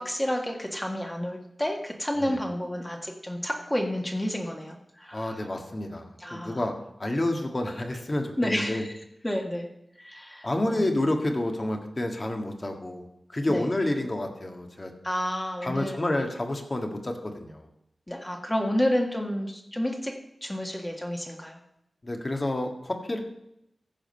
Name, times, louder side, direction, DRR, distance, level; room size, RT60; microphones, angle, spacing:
voice 1, 0.0-5.5 6.2-6.6 8.4-8.9 9.2-9.7 10.0-10.8 13.5-13.7 15.0-16.0 18.1-21.6, equal, 15° left, 2 dB, 1.6 m, -30 dB
voice 2, 5.1-6.7 7.0-8.8 10.4-13.0 13.3-14.9 15.6-17.7 22.0-23.2, left 1 dB, 35° left, 4 dB, 1.7 m, -29 dB
15.0 x 5.1 x 5.5 m, 0.82 s
wide cardioid pair, 60°, 0 cm